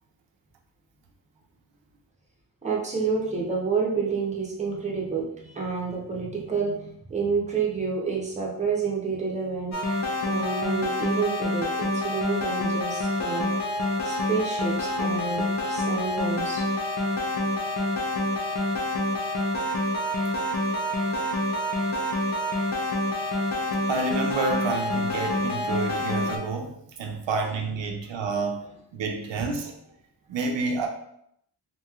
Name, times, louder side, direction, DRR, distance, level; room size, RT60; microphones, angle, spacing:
voice 1, 2.6-9.7 10.2-13.5 14.0-16.6, right 5 dB, 15° right, -3 dB, 0.7 m, -29 dB
sound 1, 9.7-26.4, left 1 dB, 40° left, 0.5 m, -27 dB
voice 2, 23.9-28.7 28.9-29.8 30.3-30.9, right 3 dB, 80° right, 3 dB, 0.6 m, -29 dB
3.0 x 2.8 x 2.3 m, 0.73 s
wide cardioid pair, 115°, 43 cm